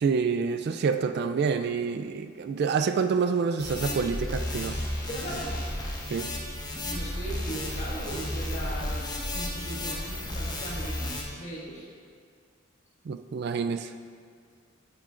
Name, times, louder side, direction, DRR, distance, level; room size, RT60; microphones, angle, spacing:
voice 1, 0.0-4.8 6.1-6.3 13.1-13.9, right 5 dB, 55° right, 8 dB, 0.3 m, -27 dB
sound 1, 3.6-11.2, left 1 dB, 20° left, 1.1 m, -33 dB
voice 2, 5.1-5.6 6.8-9.0 9.3-11.9, right 1 dB, 35° left, -6 dB, 1.8 m, -38 dB
10.0 x 8.7 x 2.5 m, 2.1 s
head